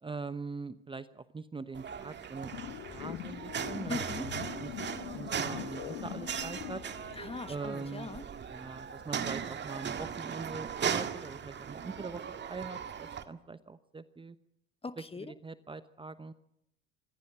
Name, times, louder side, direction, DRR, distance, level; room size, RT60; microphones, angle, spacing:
voice 1, 0.0-4.3 4.6-4.7 5.1-6.8 7.5-8.1 8.5-12.2 12.5-14.4 15.4-16.3, right 4 dB, 15° right, 1.0 m, -42 dB
sound 1, 1.7-13.2, right 7 dB, 35° right, 1.9 m, -38 dB
sound 2, 2.5-7.6, left 16 dB, 60° left, 1.3 m, -43 dB
voice 2, 3.9-4.3 7.1-8.2 14.8-15.3, left 4 dB, 20° left, 1.3 m, -40 dB
25.5 x 15.0 x 8.7 m
hypercardioid pair, 65°, 32 cm